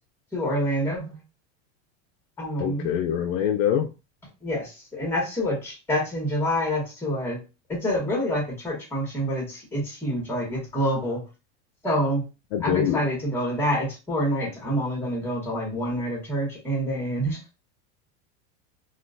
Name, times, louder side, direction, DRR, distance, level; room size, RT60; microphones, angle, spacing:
voice 1, 0.3-1.1 2.4-2.9 4.4-7.4 7.7-11.2 11.8-12.2 12.6-17.4, equal, 5° left, -2 dB, 1.6 m, -27 dB
voice 2, 2.6-3.9 12.5-13.0, left 10 dB, 60° left, 4 dB, 0.5 m, -24 dB
3.6 x 2.4 x 2.6 m, 0.29 s
supercardioid pair, 155°, 34 cm